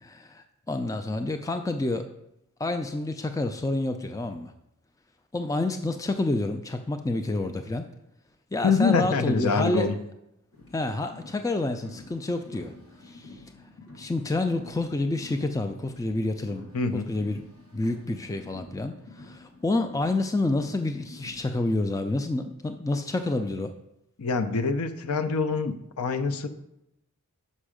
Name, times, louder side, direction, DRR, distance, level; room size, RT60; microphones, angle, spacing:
voice 1, 0.0-2.1 2.6-4.5 5.3-7.9 8.5-9.9 10.7-12.7 13.0-13.4 14.0-17.4 17.7-23.7, left 2 dB, 15° left, 7 dB, 0.3 m, -28 dB
voice 2, 8.6-10.0 16.7-17.2 24.2-26.5, left 4 dB, 85° left, 10 dB, 0.6 m, -25 dB
Car, 10.5-21.6, left 2 dB, 65° left, 1.7 m, -49 dB
6.1 x 5.5 x 4.9 m, 0.84 s
head